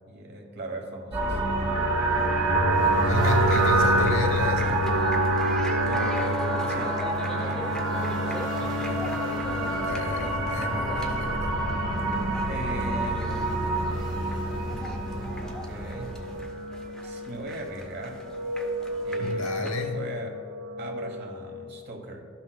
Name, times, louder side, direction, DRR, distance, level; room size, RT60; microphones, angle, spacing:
voice 1, 0.1-1.7 2.8-3.8 5.9-9.1 9.4-10.1 12.5-14.3 15.4-16.2 17.0-18.2 19.0-20.4 20.8-22.2, right 2 dB, 50° right, 2 dB, 1.0 m, -40 dB
sound 1, 1.1-16.4, right 1 dB, 25° right, 1.5 m, -29 dB
sound 2, 1.6-21.3, right 1 dB, 80° right, 0.6 m, -29 dB
voice 2, 3.1-4.8 9.8-11.5 19.2-20.0, left 1 dB, 75° left, 3 dB, 0.9 m, -32 dB
sound 3, 3.2-19.9, equal, 5° left, 0.5 m, -41 dB
12.0 x 5.8 x 2.2 m, 2.1 s
head